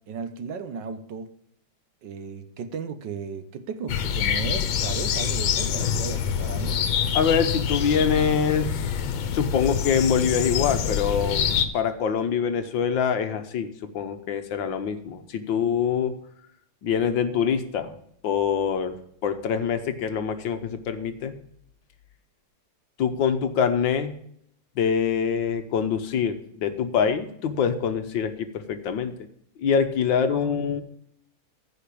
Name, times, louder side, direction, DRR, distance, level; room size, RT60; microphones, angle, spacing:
voice 1, 0.1-1.3 2.0-6.8 30.3-30.6, right 6 dB, 70° right, 10 dB, 1.5 m, -35 dB
sound 1, 3.9-11.7, left 8 dB, 90° left, 1.7 m, -26 dB
voice 2, 7.2-8.7 9.3-11.4 11.7-16.2 16.8-17.9 18.2-18.9 19.2-21.3 23.0-24.1 24.8-29.1 29.6-30.8, left 7 dB, 75° left, 9 dB, 1.7 m, -24 dB
15.0 x 5.0 x 8.5 m, 0.71 s
omnidirectional pair, 2.1 m